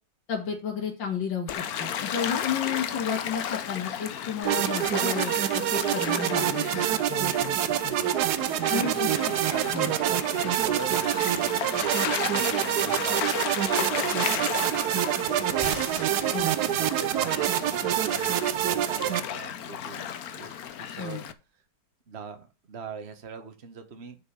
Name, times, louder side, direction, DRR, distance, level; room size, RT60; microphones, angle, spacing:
voice 1, 0.3-6.8 7.1-8.0 8.7-9.3 9.7-9.9 16.3-16.5 21.0-21.2, left 7 dB, 80° left, 0 dB, 2.8 m, -32 dB
Gull seagull / Waves surf, 1.5-21.3, left 9 dB, 60° left, 1.2 m, -34 dB
sound 1, 4.4-19.2, right 12 dB, 70° right, 1.1 m, -26 dB
voice 2, 8.7-13.5 13.9-16.0 16.6-21.2 22.1-24.2, right 5 dB, 40° right, 7 dB, 1.5 m, -42 dB
sound 2, 15.6-19.5 19.9-21.2, right 1 dB, 15° right, 2.4 m, -42 dB
6.8 x 6.3 x 7.0 m, 0.30 s
omnidirectional pair, 2.0 m